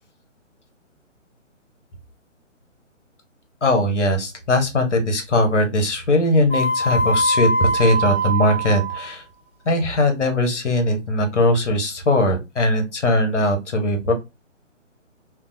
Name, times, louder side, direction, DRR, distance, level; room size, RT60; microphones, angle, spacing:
voice 1, 3.6-9.2 9.7-14.1, left 1 dB, 65° left, 4 dB, 0.9 m, -20 dB
sound 1, 6.5-9.1, right 1 dB, 40° left, 0.9 m, -22 dB
2.7 x 2.1 x 2.5 m, 0.24 s
figure-of-eight pair, 135°, 38 cm